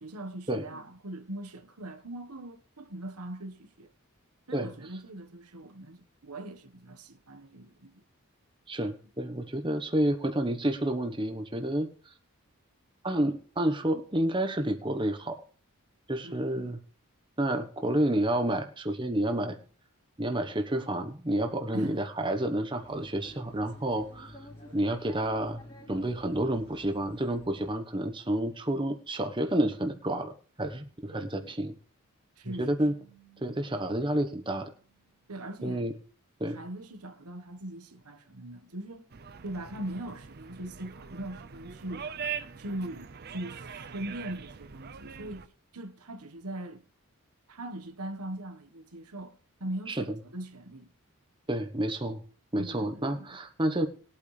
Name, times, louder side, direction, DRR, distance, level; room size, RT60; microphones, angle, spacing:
voice 1, 0.0-3.9 4.5-8.0 16.2-16.7 21.7-21.9 31.1-31.5 32.4-32.7 35.3-35.9 36.5-39.1 39.4-42.1 42.6-46.8 47.5-49.3 49.6-50.9 52.6-53.4, right 1 dB, 90° right, 1.4 m, -41 dB
voice 2, 8.7-11.9 13.0-15.4 16.1-16.8 17.4-19.6 20.2-24.4 24.7-25.6 25.9-30.3 30.6-31.7 32.4-32.9 33.4-34.7 35.6-35.9 36.4-36.6 49.9-50.2 51.5-52.2 52.5-53.9, right 1 dB, 20° right, 1.1 m, -29 dB
sound 1, 22.7-27.7, left 1 dB, 25° left, 2.9 m, -50 dB
sound 2, 32.8-36.0, right 10 dB, 90° left, 4.7 m, -62 dB
sound 3, 39.1-45.5, right 7 dB, 45° right, 0.6 m, -42 dB
20.5 x 8.7 x 3.4 m
head